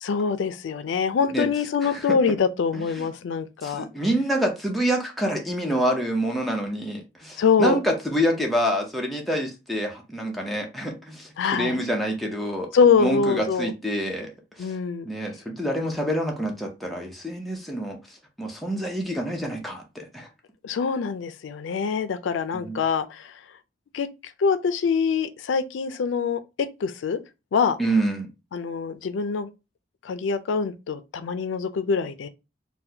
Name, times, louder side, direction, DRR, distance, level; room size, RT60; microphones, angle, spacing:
voice 1, 0.0-3.9 7.4-7.8 11.4-11.8 12.7-13.7 14.6-15.1 20.6-23.4 23.9-24.1 24.4-26.4 26.8-27.2 27.5-27.8 28.5-29.5 30.0-32.3, left 5 dB, 85° left, 0.4 m, -24 dB
voice 2, 1.8-2.1 2.7-3.1 3.6-12.7 13.0-14.3 14.6-14.7 15.0-18.0 18.4-20.3 22.5-22.8 27.8-28.3, right 1 dB, ahead, 0.6 m, -27 dB
4.1 x 2.1 x 2.7 m
head